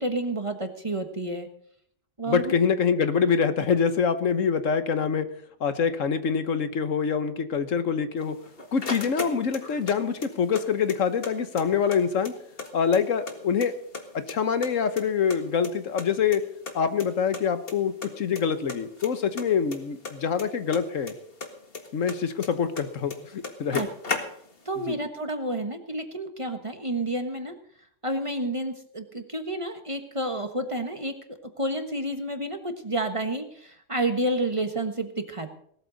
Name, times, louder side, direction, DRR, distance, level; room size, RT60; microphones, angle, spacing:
voice 1, 0.0-1.5 2.2-2.5 23.7-23.9 24.6-27.6 28.0-35.5, right 1 dB, 25° right, 6 dB, 1.4 m, -30 dB
voice 2, 2.3-5.3 5.6-8.4 8.7-12.3 12.7-13.7 14.1-16.4 16.7-21.1 21.9-23.8 24.9-25.0, left 6 dB, 75° left, 10 dB, 1.4 m, -25 dB
sound 1, 8.2-9.9 10.2-11.3 11.6-11.7 11.9-13.3 13.6-14.3 14.6-16.1 16.3-16.4 16.7-16.8 17.0-17.1 17.3-17.7 18.0-18.4 18.7-21.1 21.4-22.8 23.1-23.2 23.4-24.7, left 4 dB, 45° left, 2.0 m, -35 dB
19.0 x 13.0 x 4.1 m, 0.65 s
omnidirectional pair, 1.3 m